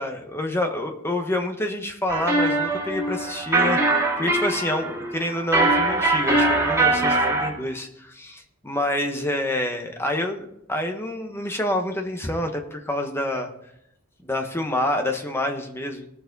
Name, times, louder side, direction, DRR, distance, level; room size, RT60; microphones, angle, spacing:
voice 1, 0.0-13.5 14.2-16.2, left 1 dB, 10° left, 4 dB, 1.2 m, -27 dB
sound 1, 2.1-7.5, right 2 dB, 15° right, 2.5 m, -22 dB
19.5 x 6.8 x 4.0 m, 0.77 s
head